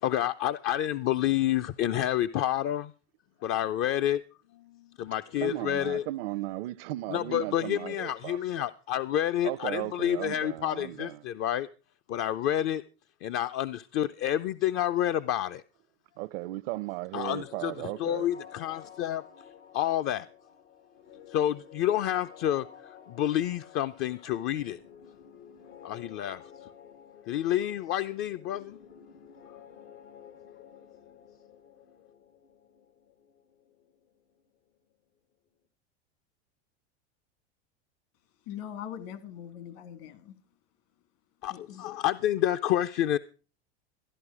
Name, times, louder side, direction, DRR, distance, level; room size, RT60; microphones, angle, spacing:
voice 1, 0.0-2.9 3.4-4.2 4.5-6.0 7.1-11.7 12.1-12.8 13.2-15.6 17.1-17.7 18.0-19.2 19.7-20.3 21.3-24.8 25.8-26.7 27.3-28.8 41.4-43.2, left 12 dB, 40° left, 0.5 m, -29 dB
voice 2, 5.4-8.7 9.4-11.2 16.2-18.3, right 18 dB, 65° right, 0.6 m, -36 dB
sound 1, 17.3-34.9, left 8 dB, 85° left, 2.5 m, -52 dB
voice 3, 38.5-40.3 41.5-41.8, left 10 dB, 60° left, 2.2 m, -41 dB
14.0 x 11.0 x 4.8 m
hypercardioid pair, 105°, 33 cm